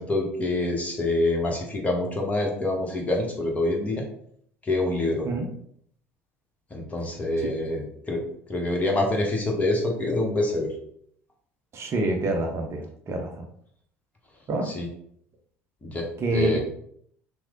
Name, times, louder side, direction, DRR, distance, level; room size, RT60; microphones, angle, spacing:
voice 1, 0.0-4.0 4.6-5.3 6.7-10.7 14.6-14.9 15.8-16.6, left 2 dB, 20° left, 0 dB, 1.0 m, -26 dB
voice 2, 11.7-13.4 14.5-14.7 16.2-16.6, right 2 dB, 40° right, 2 dB, 0.6 m, -27 dB
3.1 x 2.0 x 3.7 m, 0.66 s
hypercardioid pair, 65°, 7 cm